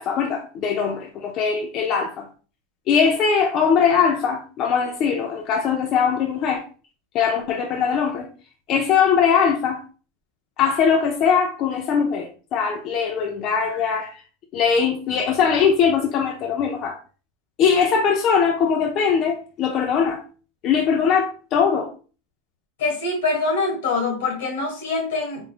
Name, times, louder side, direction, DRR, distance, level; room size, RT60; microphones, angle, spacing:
voice 1, 0.0-2.3 2.9-6.6 7.1-8.3 8.7-9.8 10.6-14.2 14.5-17.0 17.6-20.2 20.6-21.9, left 6 dB, 45° left, 3 dB, 0.5 m, -21 dB
voice 2, 22.8-25.5, left 3 dB, 85° left, 2 dB, 1.5 m, -24 dB
3.5 x 3.0 x 2.4 m, 0.37 s
supercardioid pair, 135°, 0 cm